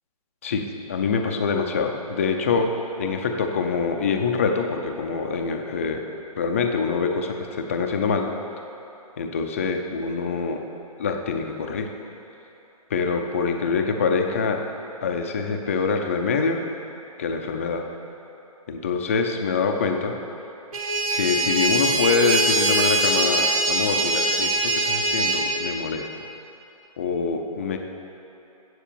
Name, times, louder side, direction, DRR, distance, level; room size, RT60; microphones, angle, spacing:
voice 1, 0.4-2.7 3.0-6.0 6.4-8.3 9.2-10.6 11.0-11.9 12.9-14.6 15.0-16.6 17.2-17.8 18.7-20.1 21.1-26.1 27.0-27.8, left 5 dB, 20° left, 4 dB, 0.4 m, -25 dB
sound 1, 20.7-25.4, right 2 dB, 65° right, 1.8 m, -22 dB
8.2 x 7.3 x 6.8 m, 2.9 s
hypercardioid pair, 175°, 19 cm